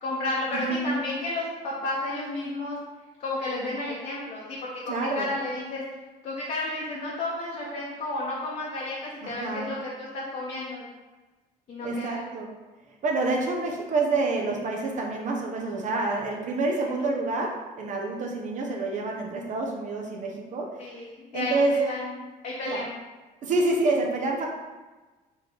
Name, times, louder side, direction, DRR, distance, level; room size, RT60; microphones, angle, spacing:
voice 1, 0.0-2.8 3.2-4.4 4.7-5.8 6.2-10.9 11.7-12.3 20.8-22.9, left 2 dB, 50° left, -5 dB, 1.0 m, -32 dB
voice 2, 0.6-0.9 4.9-5.3 9.2-9.7 11.8-12.5 13.0-20.8 21.3-21.7 22.7-22.8 23.4-24.5, right 2 dB, 45° right, 0 dB, 0.7 m, -27 dB
4.2 x 3.1 x 3.7 m, 1.2 s
cardioid pair, 110°, 17 cm